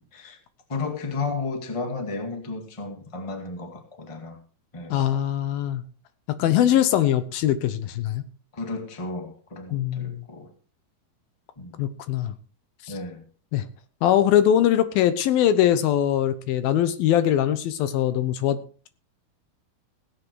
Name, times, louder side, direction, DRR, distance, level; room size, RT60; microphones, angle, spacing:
voice 1, 0.7-4.4 4.7-5.0 6.4-6.8 8.5-10.5 11.6-11.8 12.9-13.2, left 3 dB, 15° left, 4 dB, 1.2 m, -33 dB
voice 2, 4.9-5.8 6.3-8.2 9.7-10.2 11.8-12.3 13.5-13.6 14.0-18.6, left 11 dB, 75° left, 12 dB, 2.6 m, -22 dB
17.0 x 8.5 x 4.7 m, 0.38 s
omnidirectional pair, 4.4 m